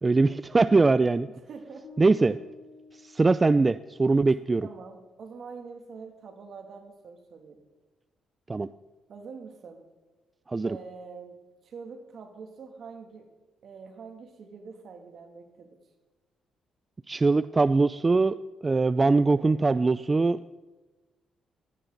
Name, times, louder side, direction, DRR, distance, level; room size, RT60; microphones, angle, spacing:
voice 1, 0.0-1.3 2.0-2.3 3.1-4.7 8.5-8.7 10.5-10.8 17.1-18.3 18.6-20.4, right 3 dB, 25° right, 15 dB, 0.4 m, -22 dB
voice 2, 1.3-1.9 2.2-2.3 4.6-7.6 9.1-9.9 10.6-13.3 13.6-15.8 19.3-19.5, right 5 dB, 60° right, 4 dB, 2.6 m, -45 dB
sound 1, 1.8-4.0, left 5 dB, 60° left, 2.6 m, -50 dB
17.5 x 14.5 x 4.0 m, 1.2 s
cardioid pair, 90°, 0 cm